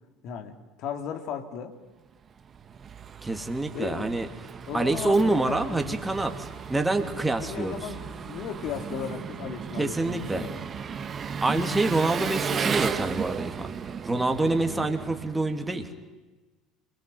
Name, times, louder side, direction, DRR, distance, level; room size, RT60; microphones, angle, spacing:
voice 1, 0.2-1.7 3.7-4.1 4.7-6.0 7.4-10.7 11.5-11.7, left 8 dB, 55° left, 6 dB, 3.1 m, -36 dB
Engine, 2.3-15.9, right 6 dB, 35° right, 1.8 m, -35 dB
voice 2, 3.2-4.3 4.7-7.8 9.8-10.5 11.4-13.7 14.0-15.9, right 2 dB, 10° right, 5 dB, 3.0 m, -26 dB
28.0 x 22.5 x 9.4 m, 1.2 s
hypercardioid pair, 65°, 0 cm